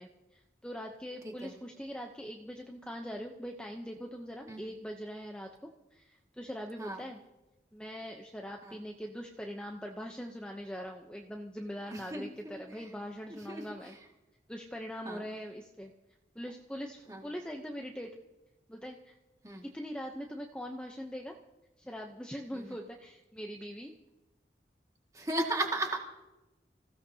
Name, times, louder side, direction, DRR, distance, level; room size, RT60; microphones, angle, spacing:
voice 1, 0.0-5.5 5.9-7.2 7.7-13.9 14.5-15.9 16.3-18.1 18.7-19.2 19.6-21.3 21.8-23.9, equal, 5° left, 2 dB, 0.7 m, -42 dB
voice 2, 11.9-12.6 13.5-14.0 15.0-15.3 17.1-17.3 19.4-19.6 22.5-22.8 25.1-26.0, right 2 dB, 20° right, 1 dB, 2.0 m, -36 dB
25.5 x 16.0 x 2.8 m, 1.0 s
head